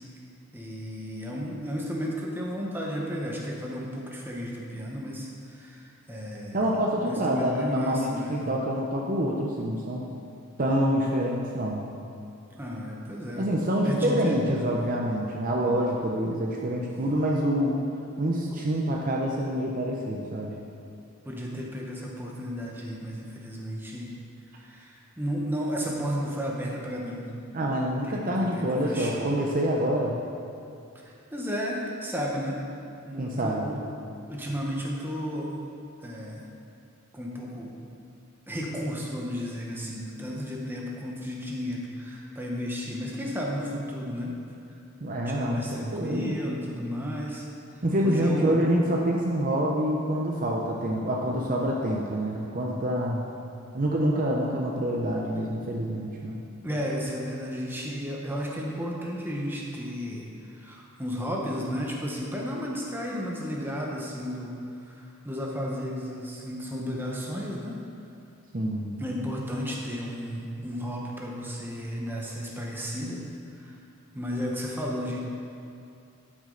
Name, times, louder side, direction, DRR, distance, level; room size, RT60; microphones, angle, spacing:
voice 1, 0.5-6.6 7.0-8.4 12.6-13.5 13.8-14.4 21.2-24.1 24.5-27.3 28.0-29.2 31.0-32.6 33.0-33.9 34.3-35.5 36.0-36.5 37.1-37.7 38.5-44.4 45.3-47.4 48.0-48.6 56.6-67.8 69.0-73.3 73.5-73.8 74.1-75.2, equal, 10° right, -2 dB, 1.0 m, -33 dB
voice 2, 6.5-10.0 10.6-11.9 13.4-17.8 18.2-20.5 27.5-30.1 33.2-33.8 45.0-46.3 47.8-53.3 53.7-56.4 68.5-69.0, equal, 40° right, -2 dB, 0.6 m, -26 dB
12.0 x 6.2 x 3.9 m, 2.5 s
head